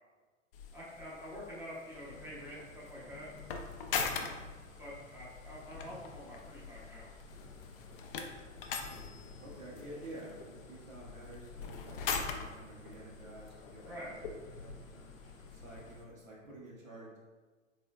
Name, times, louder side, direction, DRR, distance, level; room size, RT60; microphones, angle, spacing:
sound 1, 0.5-16.0, left 5 dB, 45° left, 0.5 m, -43 dB
voice 1, 0.7-3.3 4.8-7.1 13.9-14.1, equal, 5° right, -7 dB, 0.5 m, -47 dB
sound 2, 1.9-16.0, left 3 dB, 80° left, 0.8 m, -53 dB
voice 2, 9.4-14.7 15.5-17.2, right 1 dB, 90° right, -6 dB, 1.4 m, -50 dB
3.7 x 3.4 x 2.2 m, 1.3 s
figure-of-eight pair, 110°, 39 cm